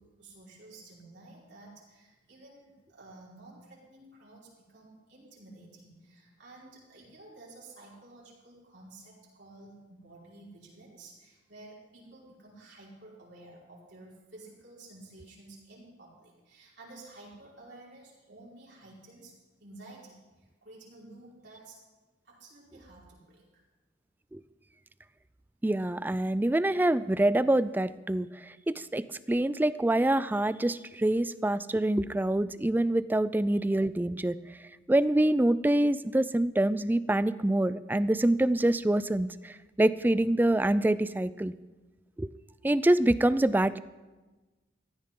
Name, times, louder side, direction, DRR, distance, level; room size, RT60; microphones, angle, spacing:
voice 1, 0.0-19.3 19.6-21.8 22.2-23.6, right 2 dB, 65° right, -5 dB, 4.8 m, -52 dB
voice 2, 25.6-34.6 34.9-41.5 42.2-42.3 42.6-43.8, right 1 dB, 10° right, 16 dB, 0.3 m, -26 dB
16.0 x 14.0 x 3.8 m, 1.2 s
head